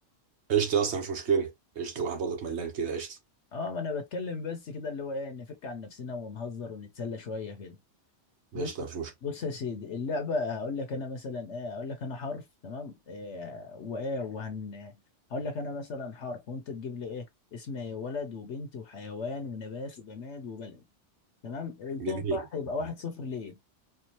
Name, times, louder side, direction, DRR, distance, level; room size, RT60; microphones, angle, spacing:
voice 1, 0.5-1.5 1.8-3.2 8.5-9.1 22.0-22.4, right 6 dB, 65° right, 1.3 m, -29 dB
voice 2, 3.5-7.8 8.5-8.9 9.2-14.9 15.3-17.2 17.5-20.8 21.4-23.6, left 4 dB, 70° left, 1.2 m, -36 dB
4.5 x 2.4 x 2.9 m
omnidirectional pair, 1.2 m